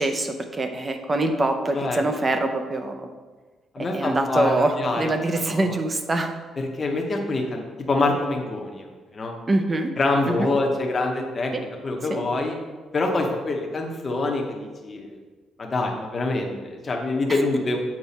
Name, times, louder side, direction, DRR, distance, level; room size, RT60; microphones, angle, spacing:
voice 1, 0.0-3.1 3.9-6.3 9.5-9.9 10.3-10.5 11.5-11.6 12.1-12.2 17.3-17.4, right 2 dB, 20° right, 7 dB, 0.5 m, -24 dB
voice 2, 3.7-5.1 5.5-5.8 6.6-8.8 9.1-9.3 10.0-12.6 12.9-15.2 15.6-17.8, left 2 dB, 20° left, 1 dB, 0.8 m, -25 dB
7.3 x 4.6 x 4.1 m, 1.3 s
cardioid pair, 175°, 0 cm